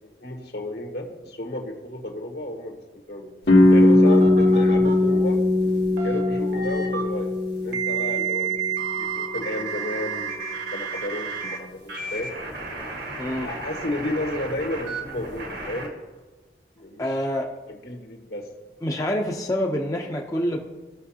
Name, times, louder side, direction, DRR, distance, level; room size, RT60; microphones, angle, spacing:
voice 1, 0.0-2.8 3.1-3.3 3.7-5.4 6.0-7.3 7.6-12.3 13.4-15.9 16.8-17.3 17.7-18.5, left 1 dB, 65° left, 1 dB, 1.5 m, -32 dB
sound 1, 3.5-9.2, left 2 dB, 80° left, 1.6 m, -19 dB
sound 2, 4.0-4.9 5.6-7.0 7.7-11.6 11.9-15.9, right 6 dB, 75° right, 1.6 m, -32 dB
voice 2, 13.2-13.5 17.0-17.4 18.8-20.6, equal, 20° left, 0 dB, 0.6 m, -26 dB
17.0 x 6.5 x 2.8 m, 1.2 s
head